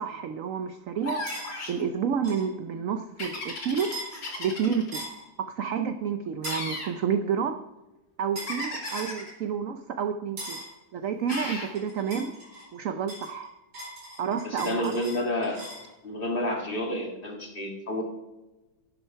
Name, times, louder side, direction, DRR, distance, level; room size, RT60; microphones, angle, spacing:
voice 1, 0.0-3.9 4.4-5.0 5.4-7.6 8.2-10.6 10.9-12.4 12.7-13.5 14.2-15.0, right 7 dB, 70° right, 8 dB, 0.8 m, -30 dB
sound 1, 1.0-1.8 3.2-4.9 6.4-6.9 8.5-9.3 11.3-11.7, left 2 dB, 70° left, 3.5 m, -35 dB
sound 2, 1.3-1.5 2.2-2.5 3.8-4.1 4.9-5.2 6.4-6.7 8.4-8.6 8.9-9.2 10.4-10.7 11.3-12.7 13.1-15.9, right 1 dB, 90° right, 5.3 m, -39 dB
voice 2, 14.4-15.6 16.0-18.0, left 1 dB, 30° left, 2 dB, 1.8 m, -30 dB
11.0 x 9.9 x 5.6 m, 1.0 s
omnidirectional pair, 2.0 m